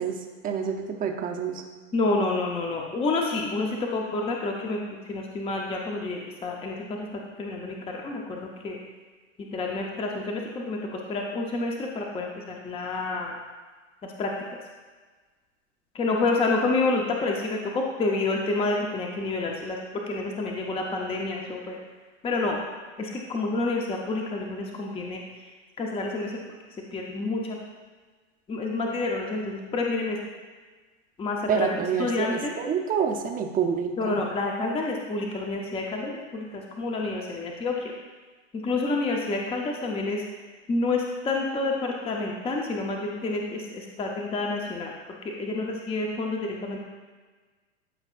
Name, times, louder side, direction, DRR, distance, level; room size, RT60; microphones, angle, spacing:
voice 1, 0.0-1.6 31.5-34.2, right 7 dB, 20° right, 3 dB, 0.7 m, -28 dB
voice 2, 1.9-8.8 9.4-13.3 14.0-14.6 15.9-21.8 22.2-22.6 23.0-25.2 25.8-26.6 26.9-27.6 28.5-30.2 31.2-32.5 34.0-37.9 38.5-40.2 40.7-44.9 45.2-46.8, left 3 dB, 15° left, 0 dB, 0.7 m, -29 dB
12.0 x 5.1 x 2.5 m, 1.4 s
supercardioid pair, 125°, 37 cm